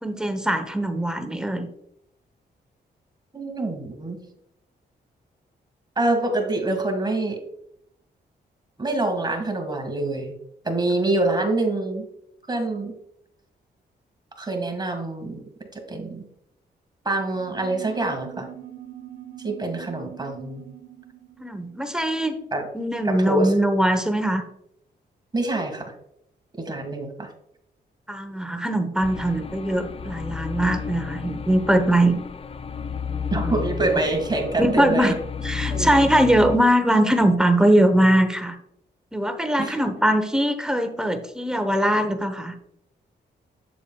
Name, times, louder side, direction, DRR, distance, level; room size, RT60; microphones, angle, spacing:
voice 1, 0.0-1.7 21.4-22.3 22.7-24.4 28.1-32.2 33.4-33.9 34.6-35.1 35.4-38.6 39.1-42.5, right 1 dB, 5° right, 8 dB, 1.0 m, -21 dB
voice 2, 3.3-4.2 6.0-7.4 8.8-10.4 10.6-12.1 12.5-12.9 14.4-15.4 15.7-16.3 17.1-18.5 19.4-20.6 22.5-22.7 23.1-23.5 25.3-25.9 26.6-27.3 33.3-35.1 35.7-35.9 39.6-39.8, right 2 dB, 25° right, 3 dB, 1.8 m, -25 dB
sound 1, 17.3-23.2, right 12 dB, 85° right, 0.9 m, -43 dB
sound 2, 29.0-36.6, left 6 dB, 35° left, 0.4 m, -32 dB
7.2 x 6.9 x 2.3 m, 0.75 s
cardioid pair, 75°, 18 cm